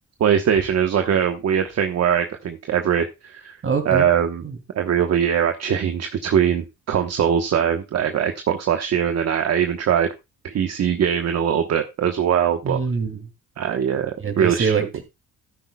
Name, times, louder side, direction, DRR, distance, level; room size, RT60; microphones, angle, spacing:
voice 1, 0.2-3.6 3.8-4.4 4.7-10.1 10.4-12.8 13.6-14.7, right 8 dB, 60° right, 1.2 m, -21 dB
voice 2, 3.6-4.1 4.4-4.6 12.6-13.2 14.2-15.0, right 5 dB, 45° right, 2.8 m, -24 dB
12.5 x 10.0 x 2.3 m
cardioid pair, 90°, 30 cm